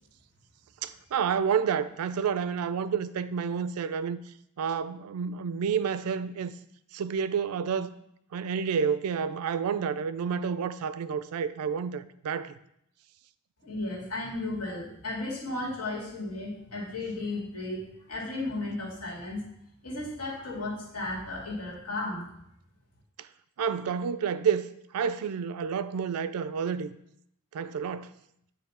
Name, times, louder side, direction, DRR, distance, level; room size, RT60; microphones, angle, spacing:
voice 1, 0.8-4.2 4.6-6.5 6.9-7.9 8.3-12.5 23.6-24.7 24.9-26.9 27.5-28.2, right 6 dB, 85° right, 0.4 m, -29 dB
voice 2, 13.6-19.4 19.8-22.2, left 2 dB, 90° left, 2.2 m, -34 dB
8.6 x 3.1 x 4.2 m
head